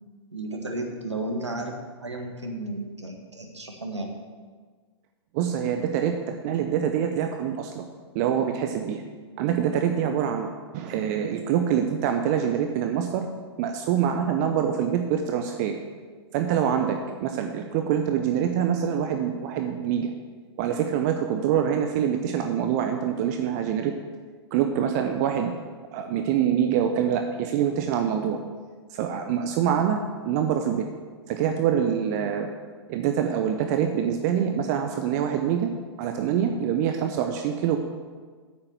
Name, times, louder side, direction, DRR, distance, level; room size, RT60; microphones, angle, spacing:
voice 1, 0.3-1.7 2.0-4.1, right 2 dB, 85° right, 2 dB, 1.6 m, -33 dB
voice 2, 5.3-7.8 8.1-9.0 9.4-10.5 10.7-13.2 13.6-15.8 16.3-20.1 20.6-23.9 24.5-25.6 25.9-28.4 28.9-30.0 30.3-30.9 31.3-32.5 32.9-35.7 36.0-37.8, right 9 dB, 40° right, 5 dB, 0.7 m, -25 dB
9.0 x 6.9 x 6.8 m, 1.5 s
figure-of-eight pair, 105°, 14 cm